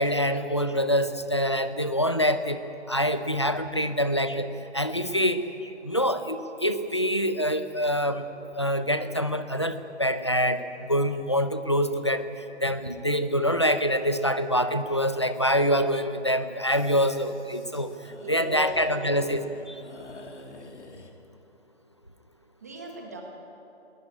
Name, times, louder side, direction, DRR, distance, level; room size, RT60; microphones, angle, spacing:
voice 1, 0.0-2.6 2.9-5.4 5.8-8.3 8.5-17.9 18.3-19.7, equal, 25° left, 10 dB, 0.6 m, -25 dB
sound 1, 16.6-21.1, left 2 dB, 85° left, 3.4 m, -48 dB
voice 2, 18.2-19.2 22.6-23.2, right 1 dB, 15° right, 1 dB, 1.4 m, -38 dB
21.0 x 19.0 x 9.5 m, 2.8 s
hypercardioid pair, 180°, 34 cm